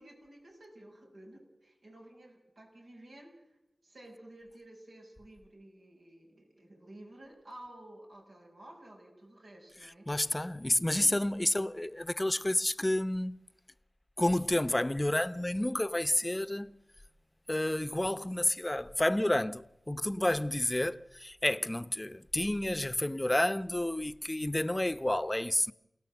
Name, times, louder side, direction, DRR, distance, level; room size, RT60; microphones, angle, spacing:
voice 1, 0.0-3.3 3.8-10.3 11.0-11.2, right 1 dB, 80° right, 7.1 m, -53 dB
voice 2, 10.1-13.4 14.2-16.8 17.5-25.7, left 1 dB, 20° left, 0.8 m, -30 dB
28.5 x 17.5 x 7.9 m
cardioid pair, 40°, 0 cm